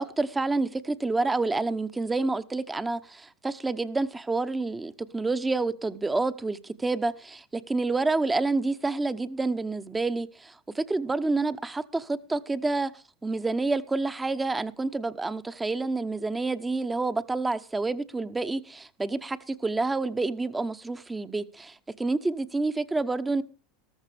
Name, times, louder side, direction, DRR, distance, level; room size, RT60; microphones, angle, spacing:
voice 1, 0.0-12.9 13.2-23.4, right 3 dB, 15° right, 0.9 m, -28 dB
13.5 x 13.5 x 3.5 m
hypercardioid pair, 95°, 0 cm